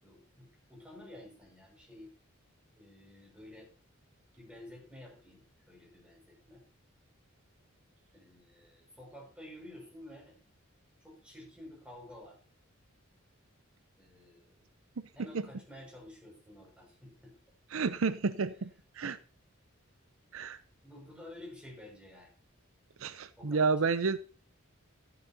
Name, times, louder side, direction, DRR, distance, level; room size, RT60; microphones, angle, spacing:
voice 1, 0.0-2.1 2.8-3.7 4.4-6.6 8.1-10.4 11.0-12.4 14.0-14.6 15.2-17.3 19.0-19.2 20.8-22.3 23.4-23.9, left 1 dB, 5° right, -1 dB, 6.0 m, -51 dB
voice 2, 17.7-18.7 18.9-19.2 20.3-20.6 23.0-24.2, right 4 dB, 80° right, 14 dB, 0.6 m, -30 dB
13.0 x 11.5 x 2.8 m, 0.35 s
head